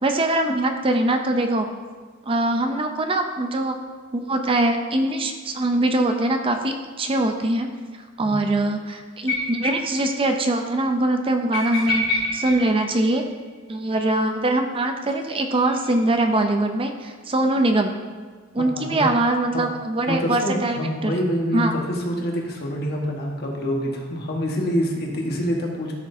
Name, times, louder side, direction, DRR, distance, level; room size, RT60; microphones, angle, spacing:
voice 1, 0.0-1.7 2.3-3.8 4.1-7.7 8.2-12.1 12.3-13.3 13.7-17.9 18.5-21.2 21.5-21.7, right 2 dB, 25° right, 5 dB, 0.5 m, -22 dB
sound 1, 9.3-10.1 10.3-10.4 10.7-10.8 11.5-13.6 15.1-16.3, left 1 dB, 75° left, 2.3 m, -28 dB
voice 2, 18.6-19.1 20.1-25.9, equal, 50° left, -1 dB, 1.4 m, -26 dB
13.0 x 6.4 x 2.7 m, 1.5 s
head